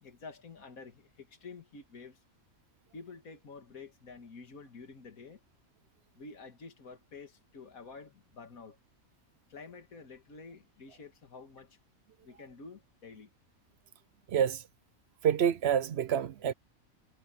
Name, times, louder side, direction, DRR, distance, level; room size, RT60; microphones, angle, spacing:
voice 1, 0.0-2.2 2.9-5.4 6.2-8.8 9.5-11.8 12.2-13.3, left 4 dB, 85° left, 2.3 m, -49 dB
voice 2, 14.3-14.6 15.2-16.5, right 9 dB, 60° right, 0.7 m, -27 dB
omnidirectional pair, 1.4 m